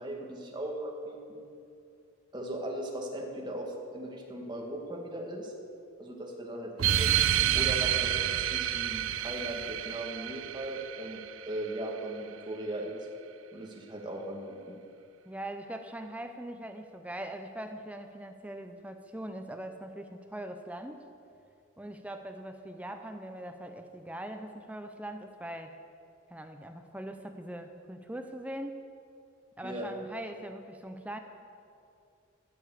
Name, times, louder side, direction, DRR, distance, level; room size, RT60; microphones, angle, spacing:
voice 1, 0.0-1.5 2.3-5.5 6.0-7.1 7.5-13.1 13.5-14.8 29.6-29.9, right 1 dB, 20° right, -1 dB, 1.9 m, -38 dB
sound 1, 6.8-11.8, right 11 dB, 85° right, 0.5 m, -29 dB
voice 2, 15.3-21.0 21.8-25.8 26.3-28.8 29.6-31.2, right 1 dB, 5° right, 6 dB, 0.6 m, -41 dB
14.5 x 7.0 x 8.3 m, 2.5 s
head